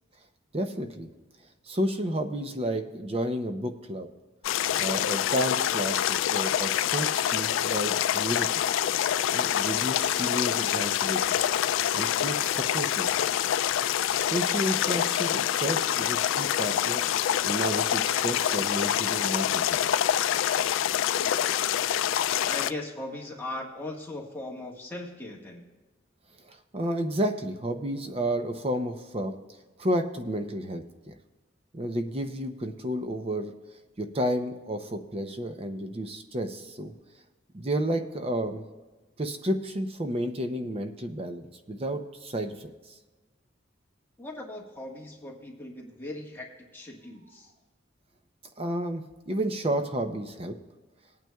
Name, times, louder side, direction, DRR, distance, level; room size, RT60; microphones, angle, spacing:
voice 1, 0.5-1.1 1.6-4.1 4.8-8.6 9.3-11.4 11.9-13.5 14.2-17.0 17.4-19.8 26.4-29.4 29.8-31.1 31.7-33.5 34.0-36.9 37.5-38.7 39.2-43.0 48.6-50.6, right 1 dB, 30° right, 6 dB, 0.6 m, -31 dB
sound 1, 4.4-22.7, left 10 dB, 80° left, 0.3 m, -26 dB
voice 2, 22.5-25.6 44.2-46.5 46.7-47.5, left 2 dB, 10° left, -2 dB, 1.5 m, -38 dB
20.0 x 9.1 x 2.3 m, 1.2 s
head